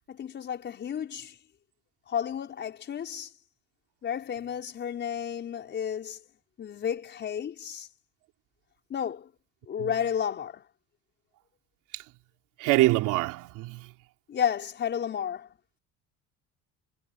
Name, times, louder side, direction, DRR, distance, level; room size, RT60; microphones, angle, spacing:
voice 1, 0.1-1.4 2.1-3.3 4.0-6.2 6.6-7.9 8.9-9.3 9.7-10.6 14.3-15.6, left 8 dB, 35° left, 5.5 m, -32 dB
voice 2, 12.6-13.9, right 19 dB, 80° right, 3.4 m, -25 dB
cardioid pair, 150°, 31 cm